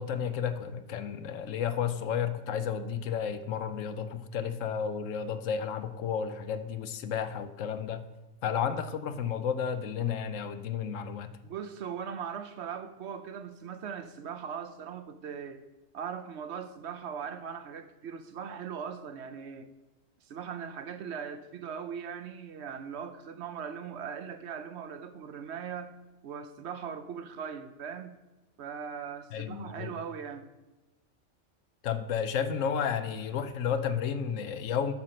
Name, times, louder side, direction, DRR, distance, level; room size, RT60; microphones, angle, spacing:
voice 1, 0.0-8.0 8.4-11.3 29.3-29.9 31.8-34.9, left 7 dB, 75° left, 10 dB, 1.0 m, -32 dB
voice 2, 11.4-15.6 15.9-19.7 20.2-25.9 26.2-28.2 28.6-30.5, right 7 dB, 65° right, 10 dB, 0.8 m, -39 dB
8.9 x 6.4 x 5.8 m, 1.1 s
omnidirectional pair, 1.3 m